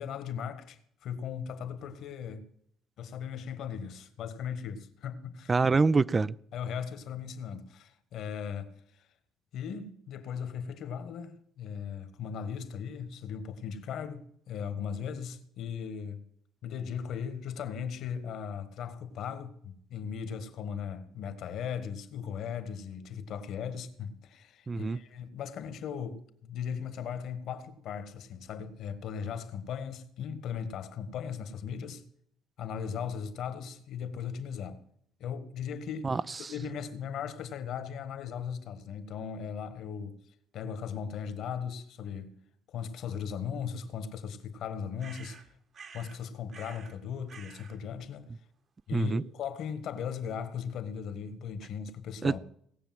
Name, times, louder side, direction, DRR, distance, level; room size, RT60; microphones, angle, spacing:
voice 1, 0.0-2.4 3.0-5.5 6.5-9.1 9.5-16.2 16.6-32.0 32.6-34.8 35.2-36.1 36.5-40.2 40.5-42.3 42.7-45.4 45.9-48.3 48.9-52.4, left 7 dB, 70° left, 1.6 m, -38 dB
voice 2, 5.5-6.3 24.7-25.0 36.0-36.2 48.9-49.2 52.2-52.4, right 4 dB, 30° right, 0.5 m, -25 dB
sound 1, 45.0-46.2 46.5-47.0 47.3-47.8, right 5 dB, 50° right, 2.0 m, -50 dB
18.0 x 6.9 x 7.7 m
supercardioid pair, 75°, 0 cm